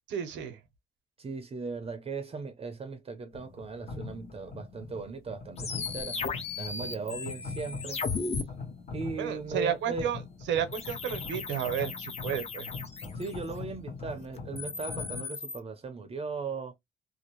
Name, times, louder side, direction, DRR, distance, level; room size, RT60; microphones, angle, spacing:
voice 1, 0.1-0.6 9.2-10.2 10.5-12.7, right 9 dB, 85° right, 0.7 m, -32 dB
voice 2, 1.2-6.2 6.5-8.0 8.9-10.1 13.2-16.7, right 4 dB, 30° right, 0.5 m, -38 dB
sound 1, 3.3-15.2, left 4 dB, 55° left, 0.9 m, -42 dB
sound 2, 5.6-8.4 10.7-13.5 14.4-15.6, left 5 dB, 35° left, 0.6 m, -36 dB
2.5 x 2.1 x 2.9 m
cardioid pair, 110°, 19 cm